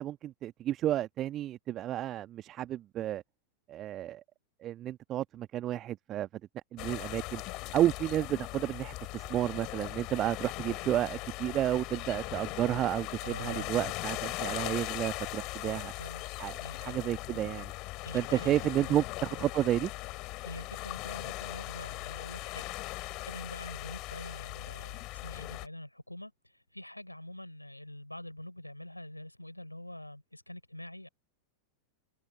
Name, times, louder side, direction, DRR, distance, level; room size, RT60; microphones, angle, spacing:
voice 1, 0.0-3.2 3.7-4.2 4.6-6.3 6.7-7.4 7.7-15.9 16.4-17.7 18.1-19.9, right 12 dB, 30° right, 1.2 m, -31 dB
sound 1, 6.8-25.7, left 22 dB, 40° left, 4.9 m, -39 dB
voice 2, 13.2-13.7 15.6-16.2 16.6-17.0 18.0-19.0 20.4-31.1, left 1 dB, 85° left, 3.8 m, -45 dB
open air
figure-of-eight pair, 90°, 0 cm